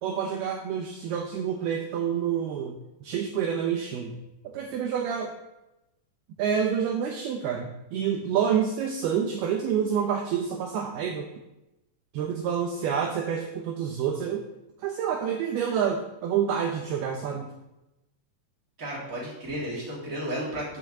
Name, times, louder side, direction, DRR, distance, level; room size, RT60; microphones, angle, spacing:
voice 1, 0.0-2.7 3.0-4.1 4.4-5.3 6.4-11.3 12.1-14.4 14.8-17.5, right 8 dB, 75° right, 2 dB, 2.5 m, -28 dB
voice 2, 18.8-20.8, right 1 dB, 20° right, -6 dB, 3.1 m, -33 dB
8.2 x 6.3 x 7.5 m, 0.94 s
omnidirectional pair, 5.1 m